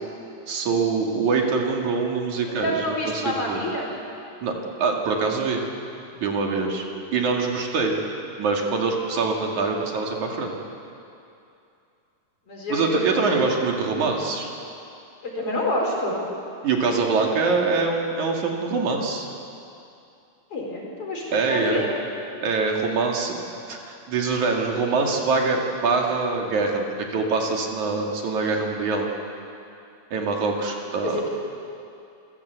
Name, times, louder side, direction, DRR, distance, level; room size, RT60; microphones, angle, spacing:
voice 1, 0.5-3.6 4.4-5.6 6.2-6.8 7.1-8.0 8.4-10.5 12.7-14.5 16.6-19.3 21.3-21.8 22.4-29.1 30.1-31.2, right 4 dB, 60° right, 1 dB, 3.5 m, -24 dB
voice 2, 2.5-3.9 12.5-13.4 15.2-16.2 20.5-22.1 31.0-31.3, left 1 dB, 40° left, -2 dB, 5.2 m, -28 dB
27.5 x 16.0 x 8.2 m, 2.6 s
omnidirectional pair, 4.0 m